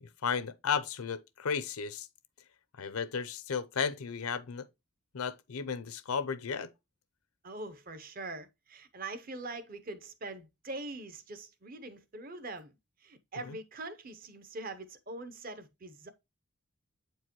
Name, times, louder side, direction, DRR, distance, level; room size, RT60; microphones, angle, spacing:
voice 1, 0.0-2.1 2.8-4.6 5.1-6.7, left 6 dB, 85° left, 0.6 m, -34 dB
voice 2, 7.4-12.7 13.0-16.1, right 2 dB, 40° right, 0.7 m, -43 dB
8.2 x 4.6 x 3.0 m
head